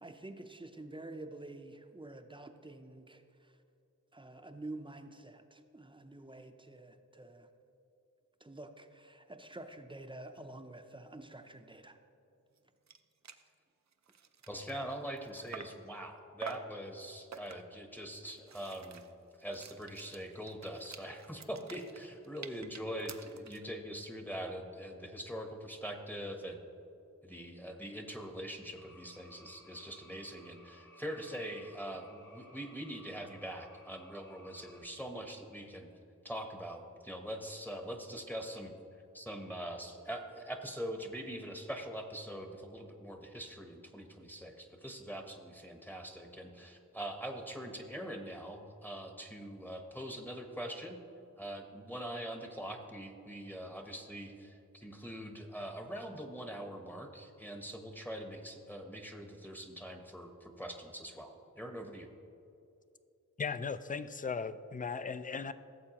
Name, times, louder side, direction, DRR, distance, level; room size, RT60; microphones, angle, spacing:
voice 1, 0.0-3.6 4.1-7.5 8.4-12.0, right 2 dB, 15° right, 7 dB, 0.6 m, -48 dB
sound 1, 12.6-12.7 12.9-13.0 13.2-13.5 13.9-15.9 16.4-16.8 17.3-17.8 18.3-23.7, right 6 dB, 60° right, 0.6 m, -49 dB
voice 2, 14.5-19.0 19.4-26.6 27.2-35.9 36.2-38.7 39.1-51.0 51.4-62.1, equal, 5° left, 4 dB, 0.9 m, -43 dB
sound 2, 28.8-34.8, equal, 75° left, 1.5 m, -59 dB
voice 3, 63.4-65.5, left 5 dB, 25° left, 13 dB, 0.4 m, -37 dB
16.0 x 7.2 x 2.9 m, 2.7 s
wide cardioid pair, 70°, 31 cm